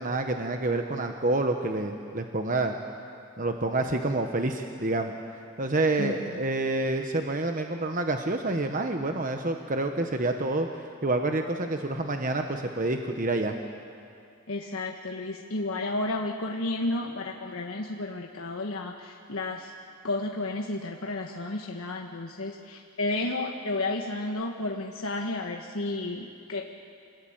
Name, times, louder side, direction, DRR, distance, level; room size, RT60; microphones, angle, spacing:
voice 1, 0.0-2.7 3.4-5.1 5.6-10.7 11.0-13.5, right 2 dB, 40° right, 4 dB, 1.1 m, -28 dB
voice 2, 6.0-6.4 14.5-19.7 20.0-26.7, left 2 dB, 80° left, 1 dB, 1.4 m, -32 dB
26.5 x 20.0 x 8.8 m, 2.4 s
head